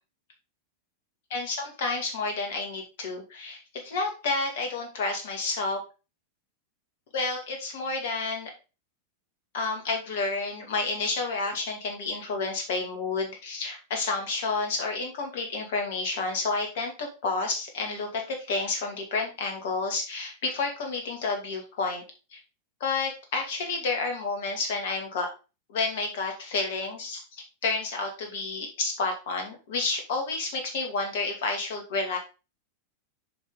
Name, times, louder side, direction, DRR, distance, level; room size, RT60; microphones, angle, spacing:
voice 1, 1.3-5.8 7.1-8.5 9.5-22.0 22.3-22.4 22.8-25.3 25.7-32.2, left 3 dB, 55° left, 3 dB, 2.6 m, -30 dB
7.0 x 5.7 x 3.9 m, 0.30 s
figure-of-eight pair, 90°, 0 cm